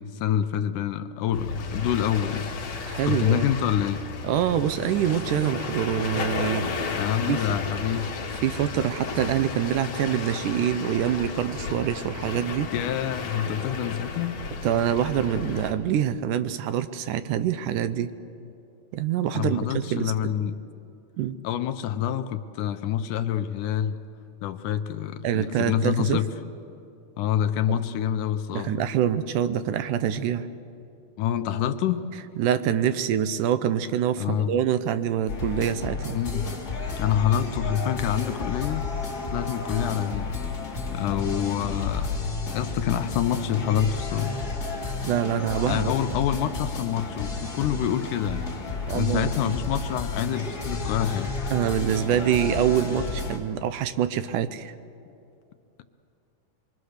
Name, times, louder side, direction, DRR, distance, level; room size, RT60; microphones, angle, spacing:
voice 1, 0.0-2.5 3.1-4.0 6.9-8.1 12.7-14.4 19.3-20.5 21.4-24.0 24.4-26.3 27.2-28.7 31.2-32.0 34.2-34.5 36.1-36.5 37.0-38.9 39.3-40.3 40.9-42.1 42.5-44.3 45.7-48.5 48.9-51.4, left 10 dB, 75° left, 9 dB, 2.2 m, -27 dB
sound 1, 1.3-15.7, left 4 dB, 55° left, 2.6 m, -33 dB
voice 2, 2.8-3.5 4.2-7.0 7.3-7.4 8.4-12.7 14.6-18.1 18.9-20.3 21.2-21.4 25.2-26.2 27.7-27.8 28.5-30.5 32.4-36.2 45.1-45.9 48.9-49.5 51.5-54.7, right 9 dB, 75° right, 12 dB, 2.2 m, -25 dB
sound 2, 35.3-53.4, left 4 dB, 30° left, 3.1 m, -32 dB
25.5 x 23.0 x 6.5 m, 2.6 s
omnidirectional pair, 3.8 m